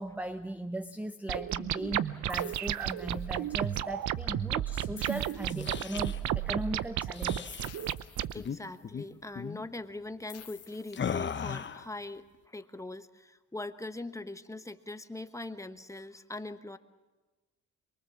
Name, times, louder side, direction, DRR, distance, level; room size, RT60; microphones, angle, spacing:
voice 1, 0.0-7.6, right 1 dB, 5° right, 11 dB, 0.7 m, -38 dB
sound 1, 1.3-8.3, right 11 dB, 70° right, 0.7 m, -32 dB
sound 2, 2.3-3.6 5.0-6.3 7.6-9.0 10.3-11.6, left 8 dB, 55° left, 1.8 m, -53 dB
sound 3, 5.3-6.2 7.1-7.7 8.3-8.6 8.8-9.1 9.4-9.6 10.9-11.9, left 7 dB, 40° left, 1.1 m, -37 dB
voice 2, 8.3-16.8, left 2 dB, 10° left, 10 dB, 1.2 m, -41 dB
23.5 x 23.0 x 7.3 m, 1.2 s
cardioid pair, 90°, 30 cm